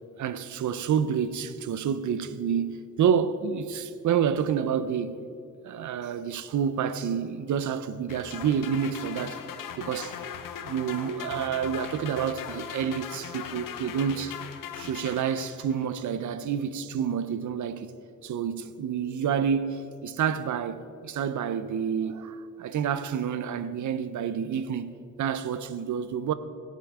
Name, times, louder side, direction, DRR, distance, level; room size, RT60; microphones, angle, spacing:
voice 1, 0.2-5.2 5.6-9.4 9.8-10.2 10.6-14.4 14.8-17.9 18.2-26.3, right 7 dB, 65° right, 0.7 m, -29 dB
sound 1, 8.1-15.8, left 8 dB, 90° left, 0.9 m, -39 dB
18.0 x 8.5 x 4.9 m
cardioid pair, 130°, 32 cm